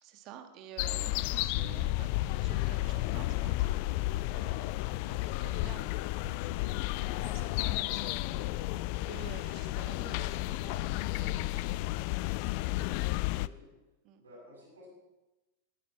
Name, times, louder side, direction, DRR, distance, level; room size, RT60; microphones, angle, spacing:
voice 1, 0.0-2.1 2.4-11.7 14.0-14.2, right 8 dB, 40° right, 8 dB, 1.5 m, -51 dB
sound 1, 0.8-13.5, left 18 dB, 45° left, 0.3 m, -32 dB
voice 2, 13.0-13.7 14.2-14.9, equal, 70° right, -6 dB, 6.1 m, -55 dB
19.5 x 9.2 x 4.5 m, 1.1 s
figure-of-eight pair, 90°, 0 cm